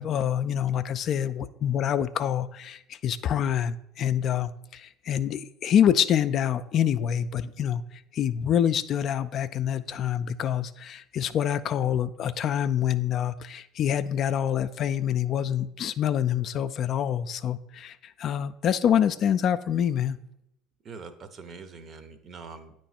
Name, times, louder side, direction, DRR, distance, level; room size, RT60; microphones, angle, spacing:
voice 1, 0.0-7.8 8.1-20.2, left 9 dB, 50° left, 12 dB, 0.3 m, -26 dB
voice 2, 20.8-22.8, right 4 dB, 45° right, 10 dB, 0.7 m, -44 dB
9.0 x 3.1 x 4.2 m, 0.79 s
hypercardioid pair, 75°, 0 cm